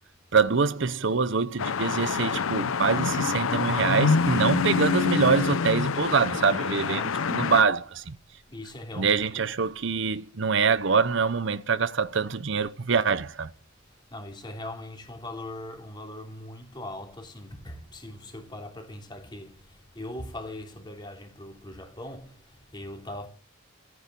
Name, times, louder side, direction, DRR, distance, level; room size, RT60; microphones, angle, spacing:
voice 1, 0.3-8.1 9.0-13.5, right 5 dB, 65° right, 0.8 m, -25 dB
sound 1, 1.6-7.6, left 5 dB, 90° left, 0.6 m, -26 dB
voice 2, 6.6-7.6 8.5-9.4 13.8-23.3, left 1 dB, 20° left, 3.2 m, -41 dB
15.0 x 9.6 x 9.0 m
head